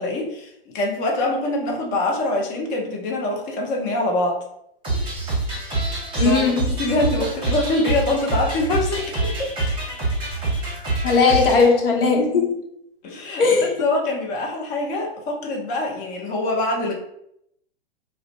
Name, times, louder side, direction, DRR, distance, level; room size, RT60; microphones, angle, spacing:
voice 1, 0.0-4.4 6.2-6.5 6.8-9.5 13.0-13.4 13.8-16.9, left 2 dB, 25° left, 0 dB, 0.6 m, -24 dB
sound 1, 4.8-11.7, right 2 dB, 15° right, 1.0 m, -26 dB
voice 2, 6.2-6.7 11.0-12.5 13.4-13.7, left 4 dB, 65° left, 0 dB, 0.8 m, -18 dB
2.4 x 2.1 x 2.4 m, 0.75 s
figure-of-eight pair, 110°, 30 cm